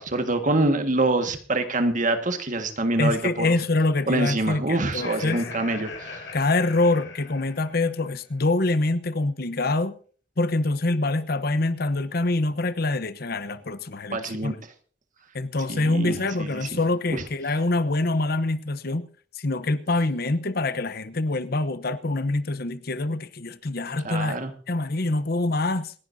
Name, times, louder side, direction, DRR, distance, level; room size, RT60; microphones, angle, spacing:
voice 1, 0.0-3.5 4.1-6.3 14.1-14.5 15.7-16.8 17.1-17.2 24.0-24.5, right 2 dB, 45° right, 1.8 m, -25 dB
voice 2, 3.0-5.4 6.3-10.0 10.4-14.6 15.3-19.1 19.3-24.4 24.7-25.9, left 2 dB, 60° left, 0.9 m, -25 dB
Laughter, 4.8-8.1, left 4 dB, 85° left, 6.7 m, -40 dB
27.5 x 11.0 x 2.8 m
head